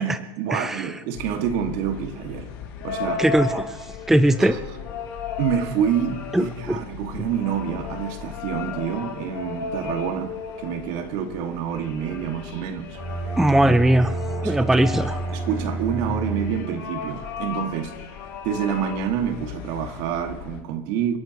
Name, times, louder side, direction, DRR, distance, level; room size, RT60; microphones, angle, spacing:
voice 1, 0.0-2.5 2.8-3.2 4.4-4.6 5.4-10.3 10.6-13.0 14.4-14.9 15.3-18.1 18.4-21.2, right 8 dB, 60° right, 2.1 m, -27 dB
voice 2, 0.5-1.0 3.2-3.8 4.1-4.6 6.3-6.8 13.4-14.1 14.4-15.2, right 1 dB, 5° right, 0.5 m, -20 dB
sound 1, 1.1-20.6, left 6 dB, 80° left, 6.2 m, -35 dB
Bowed string instrument, 12.9-17.0, right 4 dB, 25° right, 4.0 m, -30 dB
29.0 x 11.5 x 3.1 m
supercardioid pair, 140°, 12 cm